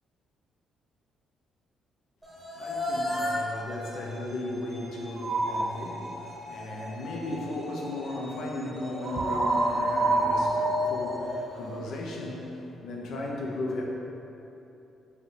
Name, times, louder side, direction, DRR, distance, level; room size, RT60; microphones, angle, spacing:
sound 1, 2.2-12.4, left 1 dB, 5° right, 0.9 m, -35 dB
voice 1, 2.5-13.8, left 2 dB, 75° left, -1 dB, 0.5 m, -36 dB
sound 2, 5.2-5.8 9.0-11.8, right 2 dB, 45° right, 0.3 m, -27 dB
4.6 x 2.1 x 3.2 m, 2.8 s
cardioid pair, 90°, 0 cm